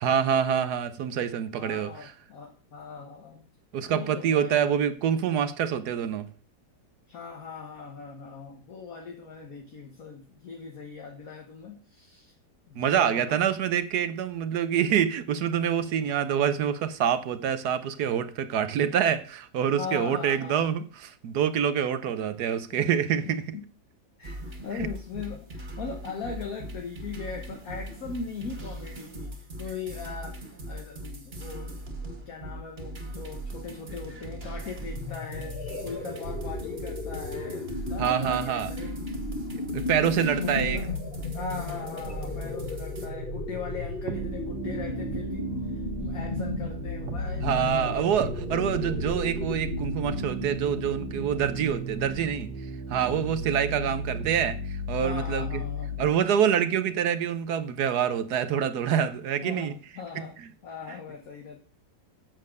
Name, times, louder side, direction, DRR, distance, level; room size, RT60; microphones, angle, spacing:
voice 1, 0.0-2.1 3.7-6.3 12.7-23.4 24.7-24.9 38.0-38.7 39.7-40.8 47.4-52.5 52.9-55.6 56.0-59.7, right 8 dB, 70° right, 1.2 m, -26 dB
voice 2, 1.6-3.4 3.8-4.8 7.1-12.3 12.7-13.4 16.0-16.1 19.7-20.7 23.2-23.6 24.2-39.0 40.2-41.0 41.3-48.6 53.7-54.0 55.0-55.9 56.9-57.1 59.4-60.4 60.6-61.6, left 5 dB, 55° left, 1.7 m, -40 dB
sound 1, 24.2-43.1, right 1 dB, 35° right, 2.0 m, -39 dB
sound 2, 34.9-52.4, left 2 dB, 35° left, 1.8 m, -35 dB
sound 3, 44.1-56.1, right 2 dB, 90° right, 1.8 m, -35 dB
7.5 x 7.5 x 6.5 m
omnidirectional pair, 1.9 m